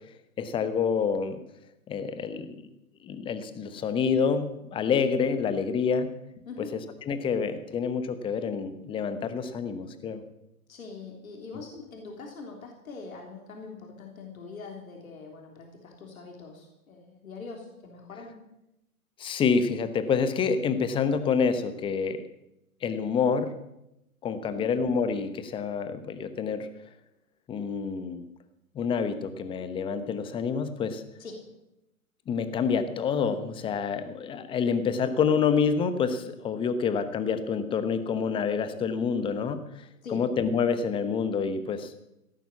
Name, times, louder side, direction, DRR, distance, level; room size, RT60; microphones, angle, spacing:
voice 1, 0.4-1.4 1.9-2.6 3.0-6.1 7.1-10.2 19.2-22.2 22.8-23.5 24.2-26.7 27.5-28.2 28.7-31.0 32.3-39.6 40.1-41.9, left 6 dB, 10° left, 11 dB, 0.9 m, -27 dB
voice 2, 6.5-6.8 10.7-18.4 24.4-24.7 31.2-31.4 40.0-40.2, left 4 dB, 65° left, 2 dB, 3.4 m, -43 dB
17.0 x 9.1 x 7.2 m, 0.88 s
figure-of-eight pair, 125°, 44 cm